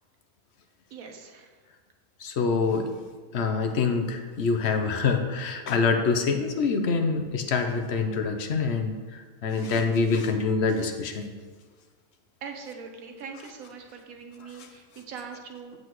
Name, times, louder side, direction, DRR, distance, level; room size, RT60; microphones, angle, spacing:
voice 1, 0.9-1.5 12.4-15.7, right 5 dB, 80° right, 4 dB, 1.3 m, -41 dB
voice 2, 2.2-2.9 3.3-8.9 9.4-11.3, left 4 dB, 55° left, 6 dB, 0.9 m, -25 dB
8.0 x 7.7 x 3.1 m, 1.5 s
omnidirectional pair, 1.5 m